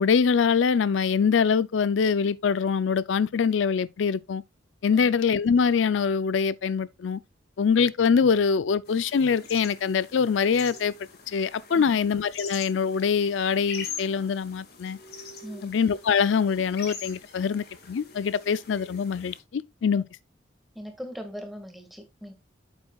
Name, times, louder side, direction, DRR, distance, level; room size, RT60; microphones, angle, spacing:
voice 1, 0.0-4.4 4.8-7.2 7.6-10.9 11.3-15.0 15.6-20.0, left 6 dB, 85° left, 0.4 m, -24 dB
sound 1, 8.9-19.4, left 6 dB, 55° left, 2.0 m, -43 dB
voice 2, 15.4-15.7 19.9-20.0 20.7-22.3, equal, ahead, 1.8 m, -40 dB
8.8 x 7.5 x 2.3 m
head